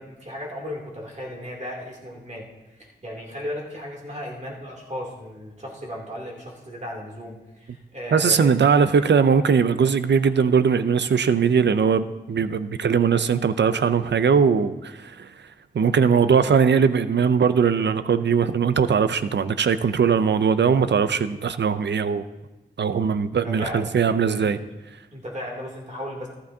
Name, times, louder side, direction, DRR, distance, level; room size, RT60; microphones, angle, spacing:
voice 1, 0.0-2.5 2.7-9.2 23.4-24.0 24.4-24.5 25.1-26.3, equal, 40° right, 2.7 m, -35 dB
voice 2, 8.1-15.3 15.7-22.2 22.8-24.6, right 6 dB, 75° right, 0.5 m, -20 dB
14.0 x 13.0 x 2.7 m
wide cardioid pair, 60°, 18 cm